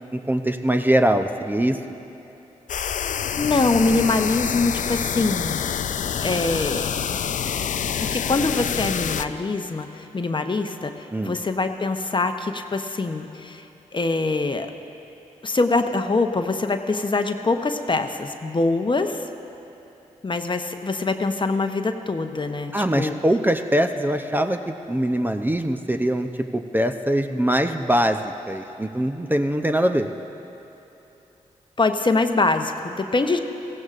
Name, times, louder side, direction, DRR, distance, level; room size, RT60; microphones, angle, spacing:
voice 1, 0.1-1.8 11.1-11.3 22.7-30.1, right 1 dB, 15° right, 6 dB, 0.6 m, -22 dB
sound 1, 2.7-9.3, left 8 dB, 65° left, 0.4 m, -27 dB
voice 2, 3.4-5.6 6.2-6.8 8.0-13.7 13.9-14.7 15.4-19.3 20.2-23.2 31.8-33.4, left 3 dB, 35° left, 7 dB, 0.8 m, -24 dB
16.0 x 15.5 x 2.5 m, 3.0 s
supercardioid pair, 40°, 14 cm